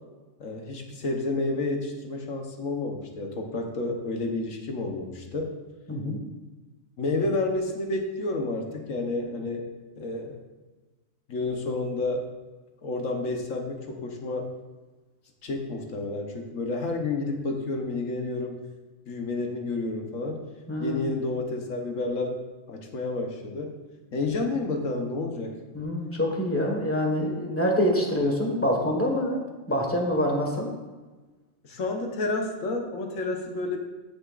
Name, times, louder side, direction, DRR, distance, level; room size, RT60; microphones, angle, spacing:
voice 1, 0.4-5.5 7.0-9.7 10.0-10.4 11.3-12.2 12.8-14.5 15.4-18.6 19.1-20.4 20.8-22.4 22.7-23.8 24.1-25.6 30.5-30.6 31.6-33.8, left 2 dB, 70° left, 2 dB, 1.5 m, -30 dB
voice 2, 20.7-21.1 25.7-29.4 29.7-30.7, equal, 10° left, 0 dB, 1.4 m, -25 dB
14.0 x 7.0 x 2.5 m, 1.3 s
omnidirectional pair, 1.5 m